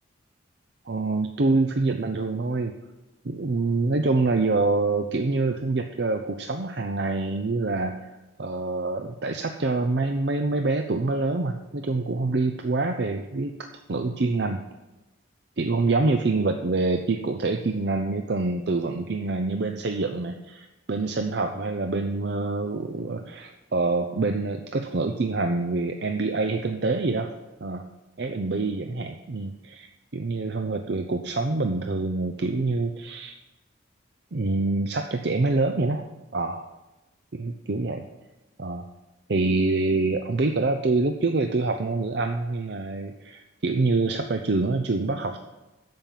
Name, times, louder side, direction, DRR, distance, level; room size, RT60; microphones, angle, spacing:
voice 1, 0.9-2.7 3.2-8.1 8.4-14.6 15.6-27.3 27.6-27.9 28.2-29.9 30.1-33.3 34.3-36.1 36.3-36.7 37.3-38.0 38.6-38.9 39.3-45.4, right 3 dB, 55° right, 6 dB, 0.6 m, -26 dB
13.0 x 5.4 x 7.2 m, 1.1 s
head